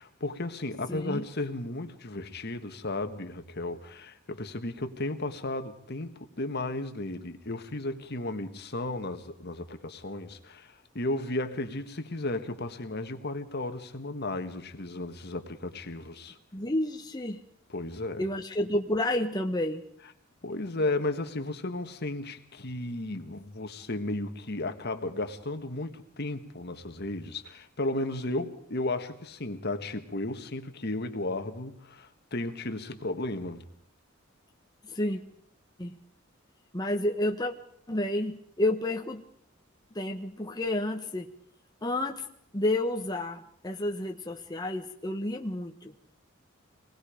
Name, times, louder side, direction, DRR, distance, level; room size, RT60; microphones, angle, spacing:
voice 1, 0.0-16.4 17.7-18.2 20.4-33.6, left 2 dB, 55° left, 1.6 m, -34 dB
voice 2, 0.9-1.3 16.5-17.4 18.2-19.8 34.8-35.2 35.8-36.0 36.7-37.5 37.9-39.2 39.9-41.3 41.8-42.3 42.5-45.9, left 1 dB, 20° left, 1.1 m, -30 dB
25.5 x 20.0 x 5.1 m
head